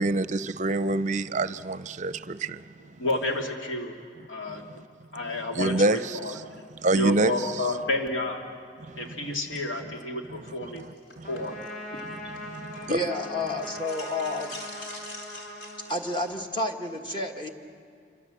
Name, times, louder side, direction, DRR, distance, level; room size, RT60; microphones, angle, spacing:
voice 1, 0.0-2.6 5.5-6.4 6.8-7.5 8.9-9.3 10.7-10.9 11.2-11.3 12.2-13.0, right 2 dB, 40° right, 0.6 m, -27 dB
voice 2, 3.0-4.0 4.3-4.8 5.1-6.4 6.9-8.4 9.0-10.8 11.3-11.6, left 1 dB, 85° left, 2.8 m, -30 dB
sound 1, 10.8-12.9 13.2-16.3, left 2 dB, 65° left, 4.2 m, -45 dB
Trumpet, 11.2-16.5, left 1 dB, 45° left, 4.1 m, -41 dB
voice 3, 12.7-14.6 15.9-17.5, left 2 dB, 25° left, 1.6 m, -30 dB
27.5 x 25.5 x 7.9 m
head